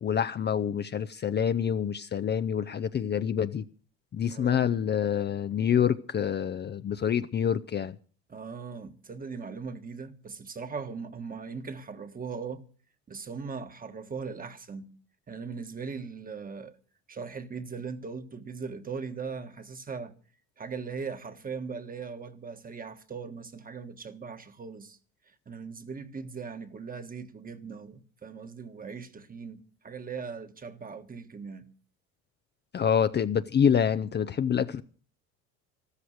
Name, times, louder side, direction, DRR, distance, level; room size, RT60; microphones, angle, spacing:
voice 1, 0.0-3.7 4.1-8.0 32.7-34.8, left 8 dB, 30° left, 0.6 m, -27 dB
voice 2, 4.3-4.8 8.3-12.6 13.1-14.9 15.3-16.8 17.1-20.1 20.6-25.0 25.5-31.7, right 5 dB, 25° right, 1.5 m, -39 dB
13.5 x 13.5 x 6.4 m
supercardioid pair, 100°, 35 cm